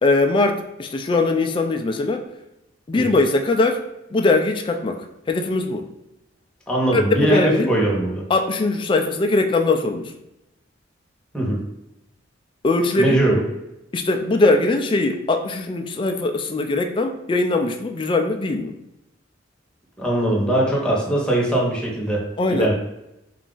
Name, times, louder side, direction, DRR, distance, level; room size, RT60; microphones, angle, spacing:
voice 1, 0.0-2.2 2.9-3.8 4.1-5.9 6.9-7.7 8.3-10.1 12.6-13.2 13.9-18.7 22.4-22.7, left 2 dB, 25° left, 5 dB, 0.3 m, -21 dB
voice 2, 6.7-8.2 11.3-11.6 13.0-13.4 20.0-22.7, right 1 dB, 5° left, -3 dB, 0.9 m, -21 dB
3.9 x 2.4 x 3.8 m, 0.90 s
head